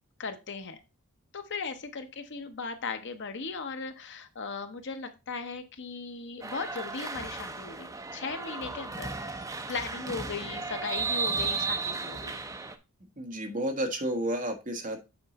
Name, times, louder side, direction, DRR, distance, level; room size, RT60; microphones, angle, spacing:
voice 1, 0.2-0.8 1.3-12.4, left 4 dB, 50° left, 7 dB, 0.9 m, -38 dB
sound 1, 6.4-12.8, right 4 dB, 15° right, 0.6 m, -34 dB
voice 2, 13.2-15.0, right 1 dB, 35° right, 4 dB, 1.3 m, -31 dB
8.0 x 4.6 x 4.0 m, 0.27 s
head